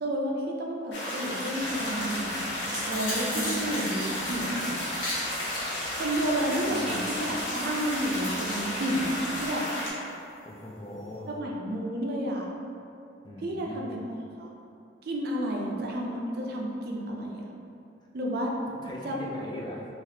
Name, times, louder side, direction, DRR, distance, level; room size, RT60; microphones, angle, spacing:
voice 1, 0.0-2.5 2.9-4.8 6.0-9.7 11.3-12.5 13.4-14.0 14.4-14.5 15.0-17.4 18.1-18.5 19.0-19.2, right 1 dB, 55° right, -1 dB, 0.4 m, -31 dB
sound 1, 0.9-9.9, left 1 dB, 75° left, 0.7 m, -33 dB
sound 2, 1.6-9.5, equal, 5° right, 0.8 m, -40 dB
sound 3, 2.3-9.7 10.1-10.2, left 1 dB, 50° left, 1.2 m, -40 dB
voice 2, 6.2-7.1 10.4-11.3 13.2-13.9 18.8-19.8, left 1 dB, 25° left, -2 dB, 0.3 m, -40 dB
3.1 x 2.4 x 2.8 m, 2.7 s
head